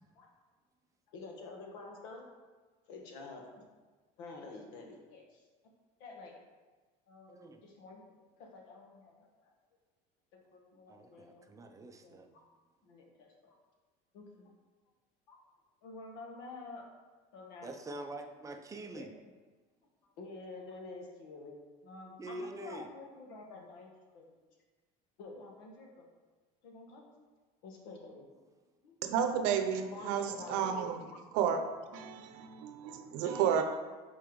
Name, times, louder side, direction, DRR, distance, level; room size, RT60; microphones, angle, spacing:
voice 1, 1.1-2.2 2.9-3.6 4.2-5.4 6.0-6.3 7.1-8.0 8.4-9.3 10.3-11.5 12.0-12.4 12.8-13.6 14.1-14.5 15.3-15.4 15.8-16.9 17.3-17.7 18.9-19.1 20.2-24.3 25.2-26.1 26.6-27.1 27.6-28.3 28.8-29.0 29.9-31.2 33.2-33.6, left 3 dB, 80° left, 1 dB, 1.2 m, -49 dB
voice 2, 7.3-7.6 10.9-12.3 17.6-19.1 22.2-22.9, right 1 dB, 20° right, 5 dB, 0.5 m, -45 dB
voice 3, 29.0-31.0 31.3-33.6, right 8 dB, 80° right, 7 dB, 0.7 m, -32 dB
7.0 x 4.5 x 3.1 m, 1.3 s
cardioid pair, 125°, 18 cm